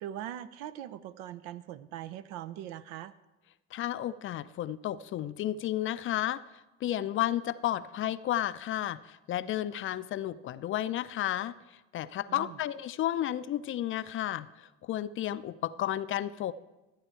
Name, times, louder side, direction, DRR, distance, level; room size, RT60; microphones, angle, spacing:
voice 1, 0.0-3.1 12.3-12.6, right 11 dB, 65° right, 13 dB, 0.7 m, -41 dB
voice 2, 3.7-6.4 6.8-11.5 11.9-14.5 14.9-16.5, left 12 dB, 40° left, 15 dB, 0.5 m, -32 dB
13.5 x 8.8 x 4.6 m, 1.0 s
hypercardioid pair, 80°, 30 cm